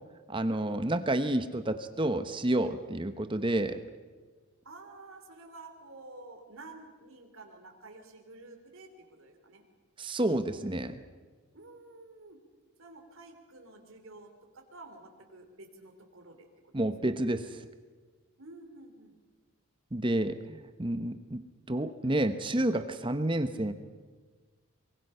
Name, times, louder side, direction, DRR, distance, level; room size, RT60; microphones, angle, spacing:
voice 1, 0.3-3.8 10.0-11.0 16.7-17.4 19.9-23.7, right 1 dB, 20° right, 10 dB, 0.9 m, -30 dB
voice 2, 4.6-9.6 11.5-12.4 12.8-17.2 18.4-19.1, right 2 dB, 70° right, 4 dB, 3.1 m, -51 dB
24.0 x 22.5 x 5.6 m, 1.4 s
head